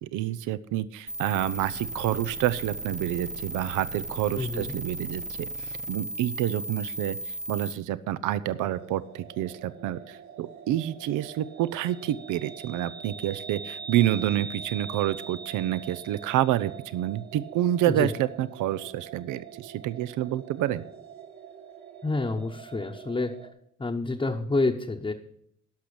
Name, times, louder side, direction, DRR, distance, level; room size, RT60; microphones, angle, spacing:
voice 1, 0.0-20.8, right 13 dB, 85° right, 16 dB, 0.6 m, -28 dB
sound 1, 1.1-7.7, right 1 dB, 25° right, 0.9 m, -36 dB
voice 2, 4.4-4.7 17.9-18.1 22.0-23.3 23.8-25.1, left 3 dB, 15° left, 0 dB, 0.9 m, -28 dB
sound 2, 8.4-23.5, right 6 dB, 70° right, 2.9 m, -43 dB
11.5 x 6.1 x 8.6 m, 0.69 s
cardioid pair, 90°, 30 cm